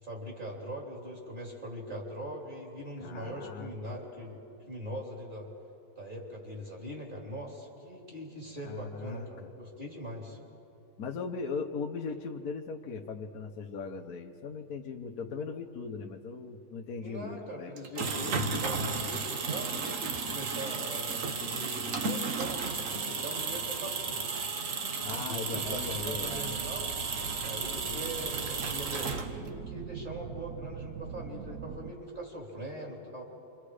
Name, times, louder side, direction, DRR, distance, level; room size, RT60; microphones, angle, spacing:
voice 1, 0.0-5.5 6.0-10.4 17.0-22.6 23.0-24.2 25.2-26.9 27.4-33.2, equal, 20° right, -2 dB, 3.8 m, -41 dB
voice 2, 3.0-3.7 8.6-9.3 11.0-17.7 25.0-26.5 27.8-28.3, left 5 dB, 50° left, 2 dB, 1.3 m, -39 dB
sound 1, 17.8-29.6, right 4 dB, 45° right, 1.2 m, -33 dB
sound 2, 25.6-31.9, right 7 dB, 65° right, 0.8 m, -43 dB
28.5 x 25.5 x 5.0 m, 2.8 s
omnidirectional pair, 2.3 m